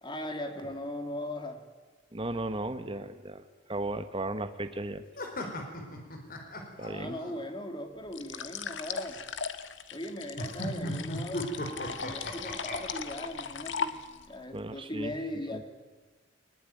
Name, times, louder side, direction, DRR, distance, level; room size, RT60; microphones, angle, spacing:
voice 1, 0.0-1.6 6.8-9.2 9.9-14.0 14.3-15.6, left 1 dB, 25° left, 6 dB, 2.6 m, -39 dB
voice 2, 2.1-3.4 3.7-5.0 6.8-7.2 14.5-15.1 15.5-15.6, right 2 dB, 30° right, 8 dB, 1.3 m, -35 dB
sound 1, 5.2-7.3 10.4-12.8, equal, 50° left, 4.1 m, -36 dB
sound 2, 8.1-14.3, left 6 dB, 75° left, 1.5 m, -38 dB
22.0 x 20.0 x 9.2 m, 1.3 s
head